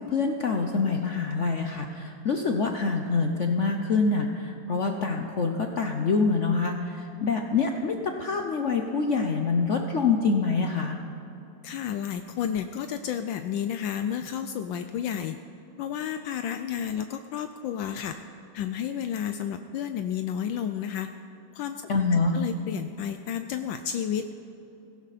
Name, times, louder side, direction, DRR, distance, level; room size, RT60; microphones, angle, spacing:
voice 1, 0.0-11.0 21.9-22.4, left 4 dB, 60° left, 4 dB, 0.7 m, -26 dB
voice 2, 11.6-15.4 15.8-18.2 18.5-21.1 21.5-21.8 22.1-24.3, left 9 dB, 75° left, 8 dB, 1.3 m, -31 dB
17.0 x 15.5 x 4.1 m, 2.9 s
omnidirectional pair, 2.2 m